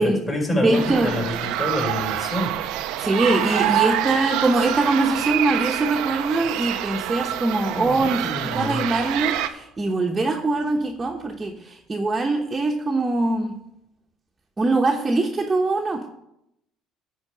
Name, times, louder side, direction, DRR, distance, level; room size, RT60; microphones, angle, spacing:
voice 1, 0.0-2.5 7.8-8.8, left 1 dB, 25° left, 0 dB, 4.0 m, -27 dB
voice 2, 0.5-1.3 3.0-8.3 8.5-13.5 14.6-16.1, right 2 dB, 25° right, 0 dB, 1.1 m, -22 dB
sound 1, 0.7-9.5, right 12 dB, 75° right, 0.6 m, -26 dB
9.8 x 4.5 x 7.6 m, 0.81 s
hypercardioid pair, 70°, 0 cm